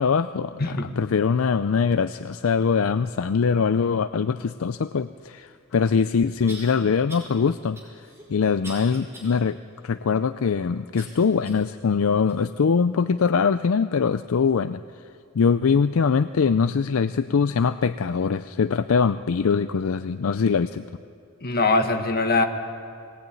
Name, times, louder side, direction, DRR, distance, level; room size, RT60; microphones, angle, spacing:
voice 1, 0.0-9.6 9.8-14.8 15.3-20.9, left 5 dB, 70° left, 12 dB, 0.5 m, -22 dB
sound 1, 5.5-5.6 6.5-6.7 7.1-7.3 7.7-9.3 9.8-9.9 11.0-11.7 12.3-12.4 13.2-13.3, right 1 dB, 15° right, 5.4 m, -43 dB
voice 2, 21.4-22.4, left 3 dB, 45° left, 5 dB, 1.6 m, -22 dB
21.5 x 18.5 x 9.2 m, 2.5 s
head